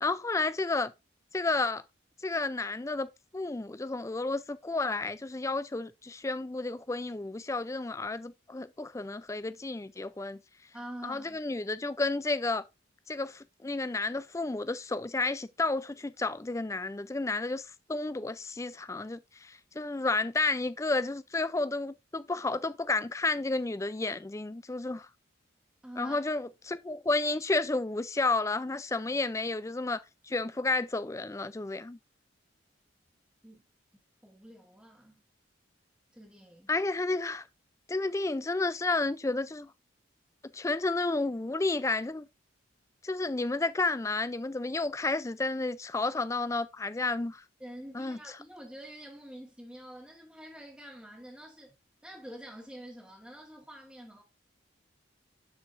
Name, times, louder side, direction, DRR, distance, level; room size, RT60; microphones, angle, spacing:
voice 1, 0.0-0.9 1.3-1.8 2.2-10.4 11.0-12.6 13.1-25.1 26.0-32.0 36.7-37.4 37.9-39.7 40.5-42.3 43.0-47.4 47.9-48.2, left 3 dB, 15° left, 0.3 m, -31 dB
voice 2, 10.7-11.4 25.8-26.2 33.4-33.6 34.2-35.2 36.1-36.7 47.6-51.7 52.0-54.2, equal, 5° right, 1.4 m, -47 dB
12.0 x 4.8 x 2.5 m
head